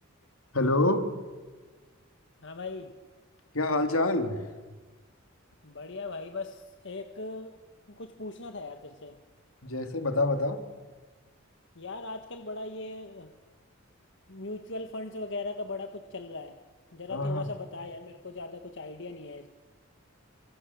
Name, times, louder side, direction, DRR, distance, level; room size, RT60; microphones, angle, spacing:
voice 1, 0.5-1.0 3.5-4.5 9.6-10.6 17.1-17.5, left 2 dB, 80° left, 7 dB, 2.8 m, -26 dB
voice 2, 2.4-2.9 5.6-7.6 7.9-9.2 11.7-13.3 14.3-16.6 16.9-19.5, left 3 dB, 60° left, 6 dB, 1.5 m, -39 dB
29.0 x 24.5 x 7.2 m, 1.4 s
head